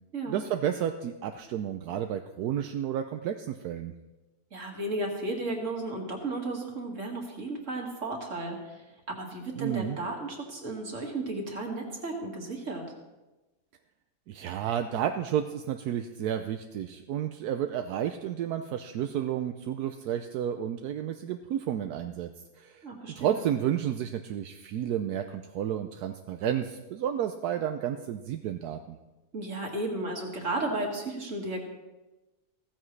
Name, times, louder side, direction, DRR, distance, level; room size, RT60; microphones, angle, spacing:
voice 1, 0.3-3.9 9.6-10.0 14.3-22.3 22.6-29.0, right 10 dB, 80° right, 7 dB, 1.2 m, -31 dB
voice 2, 4.5-8.8 9.1-12.9 22.8-23.4 29.3-31.6, right 2 dB, 55° right, 1 dB, 2.4 m, -34 dB
15.5 x 14.5 x 3.3 m, 1.1 s
omnidirectional pair, 1.6 m